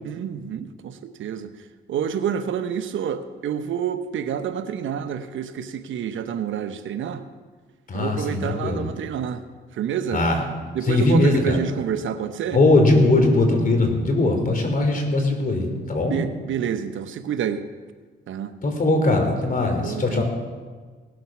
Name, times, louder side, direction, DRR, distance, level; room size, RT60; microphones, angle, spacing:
voice 1, 0.0-1.5 1.9-7.2 7.9-9.4 9.8-10.2 10.7-12.6 16.1-17.6 18.3-18.5 19.8-20.2, right 8 dB, 70° right, 10 dB, 0.9 m, -28 dB
voice 2, 7.9-8.9 10.1-10.5 10.8-11.6 12.5-16.2 18.6-20.2, left 2 dB, 40° left, 3 dB, 3.3 m, -20 dB
18.0 x 7.6 x 6.0 m, 1.5 s
cardioid pair, 70°, 21 cm